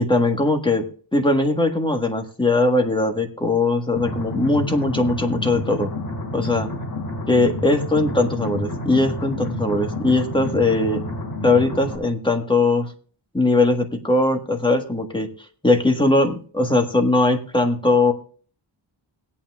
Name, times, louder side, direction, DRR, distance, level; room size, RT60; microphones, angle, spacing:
voice 1, 0.0-5.9 6.3-6.7 7.3-11.0 11.4-12.9 13.3-15.3 15.6-18.1, left 2 dB, 10° left, 3 dB, 1.5 m, -20 dB
sound 1, 4.0-12.0, left 1 dB, 50° left, 4.8 m, -29 dB
21.0 x 8.7 x 2.4 m, 0.42 s
wide cardioid pair, 120°, 47 cm